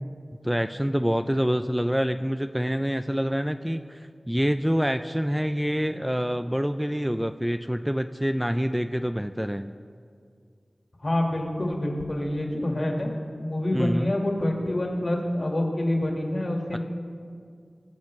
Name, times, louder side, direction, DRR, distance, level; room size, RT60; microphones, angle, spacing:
voice 1, 0.4-9.7 13.7-14.1 16.7-16.8, equal, 5° right, 8 dB, 0.3 m, -26 dB
voice 2, 11.0-13.1 13.4-16.8, left 1 dB, 50° left, 0 dB, 1.8 m, -26 dB
20.5 x 7.3 x 3.2 m, 2.3 s
wide cardioid pair, 50°, 0 cm